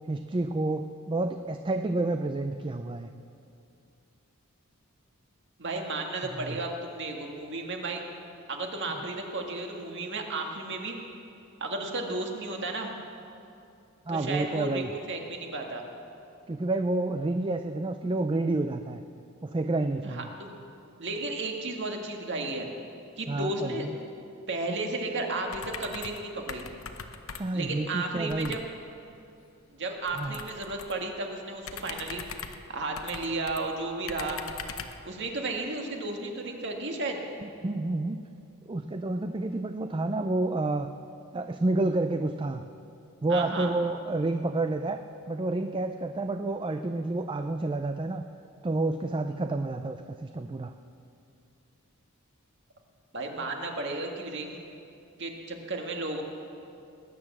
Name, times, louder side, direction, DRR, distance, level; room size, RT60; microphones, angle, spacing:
voice 1, 0.1-3.1 6.4-6.6 14.1-14.9 16.5-19.0 19.4-20.3 23.3-23.9 27.4-28.6 30.2-30.5 37.4-38.2 38.7-40.9 41.3-42.7 43.2-45.0 45.3-48.3 48.6-50.7, right 2 dB, 20° right, 7 dB, 0.4 m, -29 dB
voice 2, 5.6-8.0 8.5-11.0 11.6-12.9 14.1-15.8 20.0-20.5 21.0-22.7 23.2-23.9 24.5-26.7 27.5-28.6 29.7-32.2 32.7-34.4 35.1-37.2 43.3-43.7 53.1-54.6 55.2-56.2, right 2 dB, 55° right, 2 dB, 1.9 m, -33 dB
sound 1, 25.5-26.2 26.5-27.7 28.3-28.6 30.1-31.0 31.6-33.6 34.1-35.0, left 6 dB, 65° left, 0.9 m, -41 dB
19.5 x 9.8 x 7.3 m, 2.6 s
head